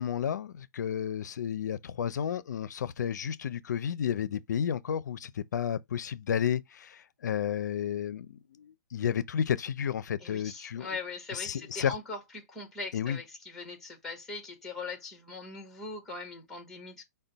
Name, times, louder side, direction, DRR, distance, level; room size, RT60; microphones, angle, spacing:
voice 1, 0.0-10.9 11.3-11.9 12.9-13.2, left 8 dB, 80° left, 0.4 m, -32 dB
voice 2, 10.2-17.0, left 3 dB, 5° left, 1.2 m, -41 dB
5.3 x 2.2 x 4.0 m
hypercardioid pair, 165°, 9 cm